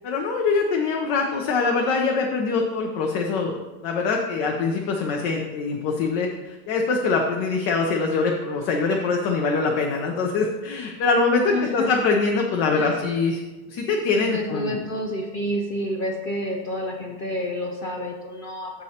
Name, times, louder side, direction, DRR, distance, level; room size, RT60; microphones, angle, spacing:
voice 1, 0.0-3.6 3.8-13.4 13.7-14.8, left 4 dB, 85° left, 1 dB, 1.4 m, -23 dB
voice 2, 11.5-12.0 12.7-13.0 14.2-18.7, equal, 55° left, 1 dB, 0.5 m, -29 dB
14.5 x 5.3 x 2.8 m, 1.2 s
omnidirectional pair, 1.8 m